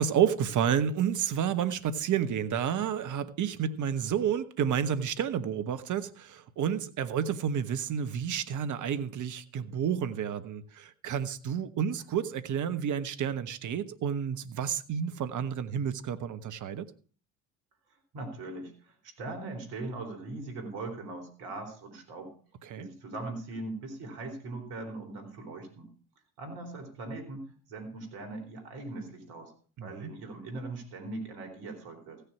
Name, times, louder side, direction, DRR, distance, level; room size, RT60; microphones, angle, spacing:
voice 1, 0.0-16.9 22.6-22.9 29.8-30.1, right 8 dB, 50° right, 1.2 m, -30 dB
voice 2, 18.1-22.3 22.8-25.9 26.4-29.5 29.8-32.2, right 2 dB, 70° right, 4.1 m, -40 dB
16.0 x 6.8 x 5.9 m
hypercardioid pair, 60°, 40 cm